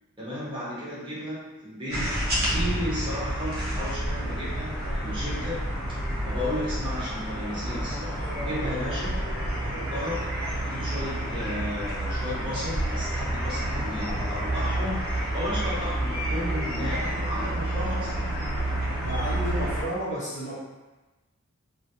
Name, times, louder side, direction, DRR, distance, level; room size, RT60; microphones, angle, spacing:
voice 1, 0.2-5.6 6.2-9.2 9.6-10.3 10.6-18.4, left 1 dB, 25° right, -9 dB, 0.9 m, -34 dB
sound 1, 1.9-19.8, right 1 dB, 45° right, 0.8 m, -29 dB
voice 2, 19.0-20.6, equal, 35° left, -9 dB, 0.9 m, -32 dB
3.0 x 2.2 x 2.6 m, 1.1 s
head